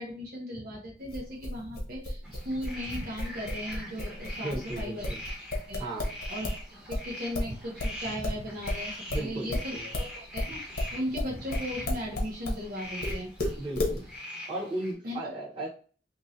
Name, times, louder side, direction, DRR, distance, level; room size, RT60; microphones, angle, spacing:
voice 1, 0.0-5.1 5.7-5.9 6.3-10.6 10.9-13.3 15.0-15.2, equal, 55° right, -3 dB, 0.8 m, -37 dB
sound 1, 1.1-6.6 6.9-12.6 13.0-14.0, left 1 dB, 55° left, 0.9 m, -32 dB
sound 2, 2.2-14.9, left 1 dB, 5° right, 1.0 m, -43 dB
voice 2, 4.4-5.2 5.8-6.2 9.1-9.9 13.6-14.0 14.4-15.7, right 1 dB, 30° right, -5 dB, 1.0 m, -36 dB
3.0 x 2.7 x 2.6 m, 0.40 s
head